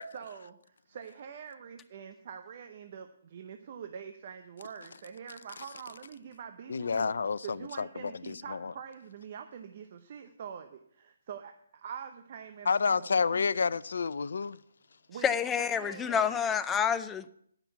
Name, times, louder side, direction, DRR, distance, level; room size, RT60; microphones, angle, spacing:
voice 1, 0.1-7.1 7.4-13.5 15.1-15.3 15.6-16.4, right 7 dB, 45° right, 0.8 m, -45 dB
voice 2, 6.7-7.9 8.3-8.7 12.7-14.6, left 5 dB, 70° left, 0.4 m, -29 dB
voice 3, 15.2-17.3, left 7 dB, 10° left, 0.5 m, -28 dB
10.5 x 6.0 x 8.0 m
hypercardioid pair, 150°, 0 cm